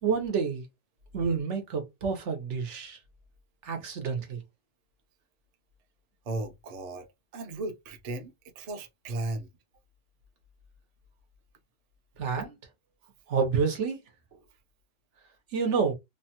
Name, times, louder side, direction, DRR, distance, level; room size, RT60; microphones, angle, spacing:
voice 1, 0.0-0.7 1.1-3.0 3.6-4.4 12.2-12.6 13.3-14.0 15.5-15.9, right 5 dB, 75° right, 1.1 m, -28 dB
voice 2, 6.3-9.5, right 2 dB, 45° right, 0.5 m, -36 dB
3.0 x 2.2 x 2.8 m
omnidirectional pair, 1.2 m